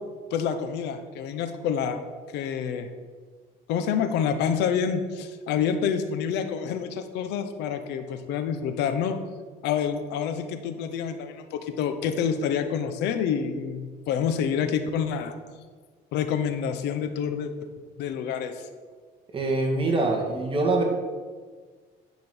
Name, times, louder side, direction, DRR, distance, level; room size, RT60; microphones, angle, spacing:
voice 1, 0.3-2.9 3.7-9.2 9.6-15.3 16.1-17.5 18.0-18.6, left 7 dB, 90° left, 8 dB, 0.9 m, -28 dB
voice 2, 19.3-20.8, right 2 dB, 30° right, 0 dB, 2.0 m, -24 dB
10.0 x 5.3 x 6.1 m, 1.5 s
cardioid pair, 110°, 17 cm